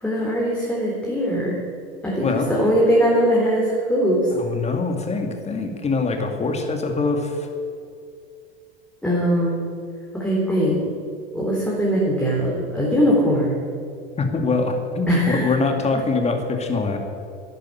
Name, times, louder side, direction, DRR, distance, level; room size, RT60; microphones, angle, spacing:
voice 1, 0.0-1.6 2.0-4.3 9.0-9.7 10.1-10.8 11.3-13.6 15.1-15.5, equal, 5° left, -5 dB, 3.7 m, -21 dB
voice 2, 2.2-2.5 4.3-7.5 14.2-17.0, left 3 dB, 20° left, 4 dB, 2.3 m, -23 dB
12.0 x 10.0 x 8.7 m, 2.4 s
hypercardioid pair, 105°, 30 cm